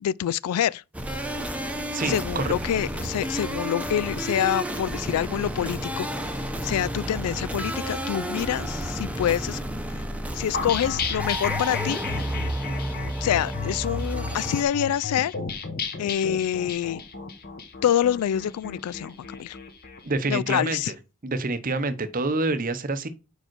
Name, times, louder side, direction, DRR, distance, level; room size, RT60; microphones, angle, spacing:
voice 1, 0.0-0.8 2.1-9.6 10.3-12.0 13.2-15.3 16.0-17.0 17.8-19.6 20.3-20.9, left 10 dB, 85° left, 0.3 m, -26 dB
sound 1, 0.9-14.6, right 1 dB, 5° right, 0.8 m, -31 dB
voice 2, 1.9-2.5 20.0-20.9 21.2-23.1, right 3 dB, 40° right, 0.7 m, -27 dB
sound 2, 10.5-20.0, left 5 dB, 45° left, 1.1 m, -33 dB
5.1 x 4.9 x 6.0 m
head